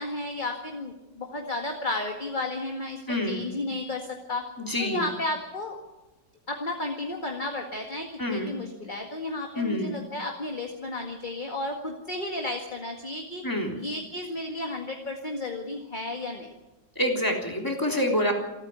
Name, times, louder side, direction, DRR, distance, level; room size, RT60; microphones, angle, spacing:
voice 1, 0.0-4.5 4.8-5.7 6.5-13.4 13.8-16.5, left 2 dB, 25° left, 2 dB, 2.0 m, -33 dB
voice 2, 3.1-3.4 4.6-5.0 8.2-8.5 9.6-9.9 13.4-13.8 16.9-18.3, left 1 dB, 10° left, 1 dB, 3.5 m, -27 dB
28.5 x 9.6 x 9.6 m, 1.0 s
omnidirectional pair, 2.0 m